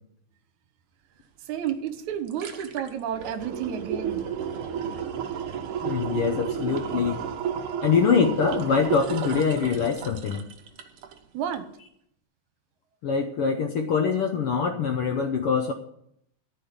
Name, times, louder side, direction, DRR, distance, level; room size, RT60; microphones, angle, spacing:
voice 1, 1.5-4.3 11.3-11.7, right 9 dB, 75° right, 10 dB, 2.3 m, -31 dB
sound 1, 1.7-1.8 2.1-11.2 11.5-11.6, right 8 dB, 55° right, 1.6 m, -32 dB
voice 2, 5.8-7.2 7.8-10.4 13.0-15.7, left 6 dB, 70° left, 5 dB, 1.4 m, -24 dB
14.0 x 5.6 x 9.6 m, 0.72 s
omnidirectional pair, 3.5 m